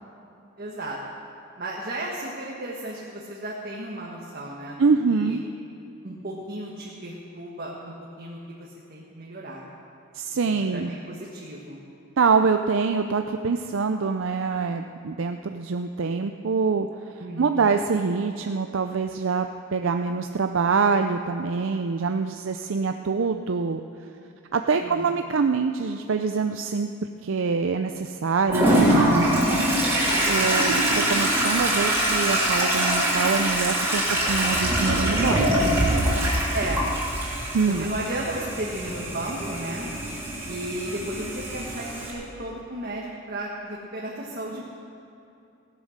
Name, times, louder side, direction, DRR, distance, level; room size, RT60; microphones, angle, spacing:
voice 1, 0.6-1.0 1.6-5.4 6.0-9.6 10.4-11.8 17.2-17.7 24.8-25.2 36.5-36.8 37.7-39.9 40.5-44.6, right 1 dB, 45° right, -4 dB, 1.6 m, -34 dB
voice 2, 4.8-5.4 10.1-10.9 12.2-23.8 24.5-26.9 27.2-29.9 30.3-35.7 37.5-37.9, right 5 dB, 65° right, 6 dB, 0.5 m, -25 dB
Toilet flush, 28.5-42.1, right 1 dB, 10° right, 3.3 m, -24 dB
16.5 x 11.0 x 6.6 m, 2.7 s
head